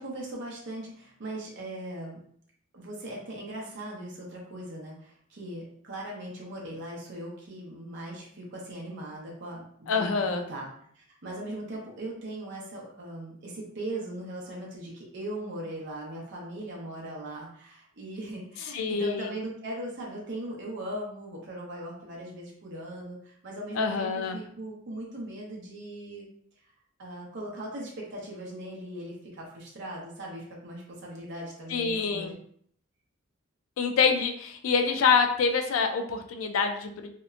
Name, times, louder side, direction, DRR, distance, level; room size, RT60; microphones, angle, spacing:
voice 1, 0.0-2.2 2.7-26.3 27.0-32.3, right 1 dB, 55° right, -3 dB, 0.7 m, -39 dB
voice 2, 9.9-10.4 18.7-19.3 23.7-24.4 31.7-32.3 33.8-37.1, left 5 dB, 70° left, 6 dB, 0.4 m, -26 dB
2.8 x 2.1 x 2.4 m, 0.62 s
head